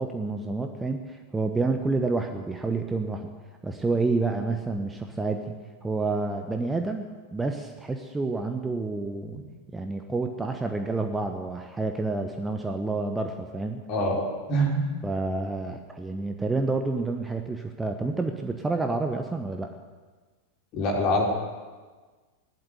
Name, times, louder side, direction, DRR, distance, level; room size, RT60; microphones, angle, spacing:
voice 1, 0.0-3.3 3.6-9.4 9.7-13.8 15.0-19.7, right 3 dB, 10° right, 5 dB, 1.1 m, -29 dB
voice 2, 13.9-14.8 20.7-21.3, equal, 40° left, 0 dB, 4.2 m, -25 dB
15.0 x 12.0 x 8.0 m, 1.3 s
figure-of-eight pair, 90°, 0 cm